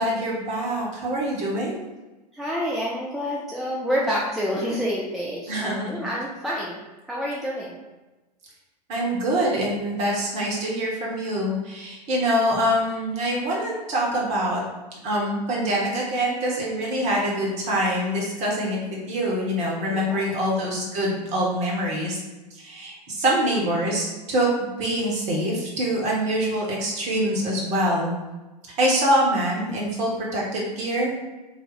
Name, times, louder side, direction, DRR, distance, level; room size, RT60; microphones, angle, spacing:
voice 1, 0.0-1.8 5.5-6.0 8.9-14.6 15.0-22.2 22.6-28.1 28.8-31.3, right 1 dB, 35° right, -3 dB, 1.1 m, -25 dB
voice 2, 2.3-6.8 7.1-7.8 19.9-20.7, equal, ahead, -5 dB, 0.4 m, -28 dB
3.4 x 2.3 x 3.9 m, 1.1 s
figure-of-eight pair, 90°, 21 cm